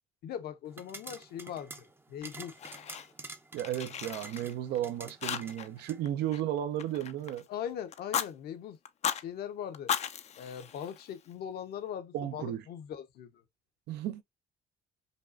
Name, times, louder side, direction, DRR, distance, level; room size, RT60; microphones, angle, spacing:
voice 1, 0.2-2.5 7.5-8.8 9.1-9.9 10.4-13.4, left 9 dB, 70° left, 0.9 m, -40 dB
sound 1, 0.7-6.0, right 3 dB, 15° right, 0.5 m, -48 dB
Fire, 2.2-3.3 3.6-4.8 5.2-5.8 6.0-7.4 7.9-8.3 8.8-9.2 9.7-11.3, left 8 dB, 40° left, 0.4 m, -36 dB
voice 2, 3.5-7.5 12.1-12.6 13.9-14.2, right 11 dB, 80° right, 0.6 m, -34 dB
5.2 x 2.4 x 2.4 m
cardioid pair, 110°, 17 cm